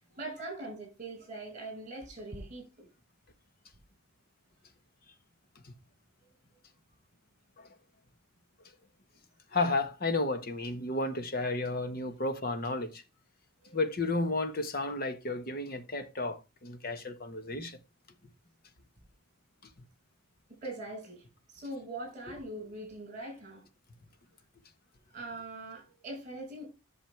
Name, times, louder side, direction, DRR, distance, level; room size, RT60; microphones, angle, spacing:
voice 1, 0.1-2.9 13.6-13.8 20.6-23.6 25.1-26.7, right 2 dB, 35° right, 5.9 m, -42 dB
voice 2, 9.5-13.0 13.7-17.8, left 2 dB, 45° left, 1.3 m, -32 dB
10.5 x 6.5 x 3.4 m
head